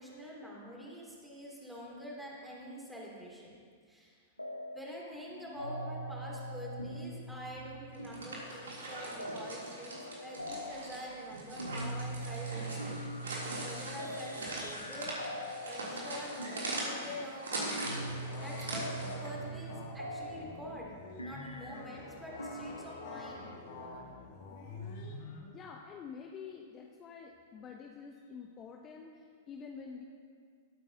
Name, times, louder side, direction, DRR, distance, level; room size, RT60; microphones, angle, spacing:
voice 1, 0.0-3.6 3.9-4.2 4.7-13.1 13.6-17.8 18.4-20.9 21.2-23.5, equal, 5° right, -4 dB, 2.9 m, -46 dB
sound 1, 4.4-5.0 5.3-23.6, right 1 dB, 90° left, 0.8 m, -43 dB
sound 2, 7.9-19.3, right 2 dB, 70° right, 3.1 m, -41 dB
sound 3, 18.0-25.5, left 3 dB, 45° left, 1.5 m, -47 dB
voice 2, 25.5-30.0, left 6 dB, 25° left, 2 dB, 0.8 m, -47 dB
19.0 x 8.9 x 2.9 m, 2.1 s
figure-of-eight pair, 100°, 0 cm